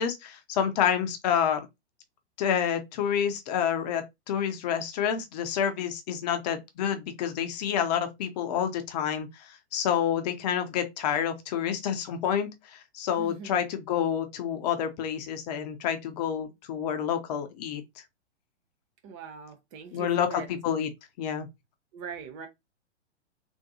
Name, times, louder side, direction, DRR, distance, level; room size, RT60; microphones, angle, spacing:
voice 1, 0.0-1.7 2.4-17.8 19.9-20.9 21.2-21.5, left 8 dB, 35° left, 0.7 m, -28 dB
voice 2, 13.2-13.6 19.0-20.5 21.9-22.5, right 6 dB, 30° right, 0.6 m, -41 dB
3.6 x 2.5 x 2.7 m
figure-of-eight pair, 110°, 35 cm